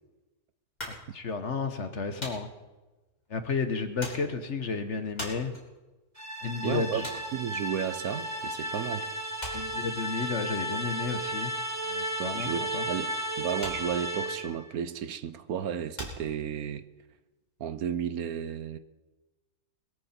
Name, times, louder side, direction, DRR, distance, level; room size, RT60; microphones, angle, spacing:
sound 1, 0.8-8.6 8.9-17.0, equal, 25° left, 4.2 m, -44 dB
voice 1, 0.9-2.5 3.3-5.6 6.4-7.1 9.5-11.5 11.9-12.8, left 4 dB, 50° left, 8 dB, 1.4 m, -32 dB
sound 2, 6.1-14.6, right 1 dB, 10° right, 2.0 m, -34 dB
voice 2, 6.6-7.0 7.3-9.1 12.2-13.1 13.4-16.8 17.6-18.8, right 8 dB, 70° right, 13 dB, 1.2 m, -33 dB
22.0 x 13.5 x 4.4 m, 1.1 s
omnidirectional pair, 1.7 m